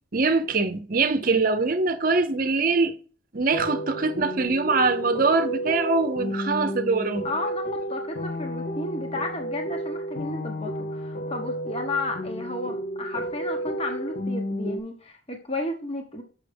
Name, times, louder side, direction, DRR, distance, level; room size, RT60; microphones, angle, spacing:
voice 1, 0.1-3.0 3.3-7.3, right 3 dB, 45° right, 0.7 m, -23 dB
sound 1, 3.5-14.8, equal, 45° left, 0.6 m, -32 dB
voice 2, 7.2-16.2, left 2 dB, 30° left, 1.1 m, -33 dB
6.6 x 6.3 x 3.4 m
head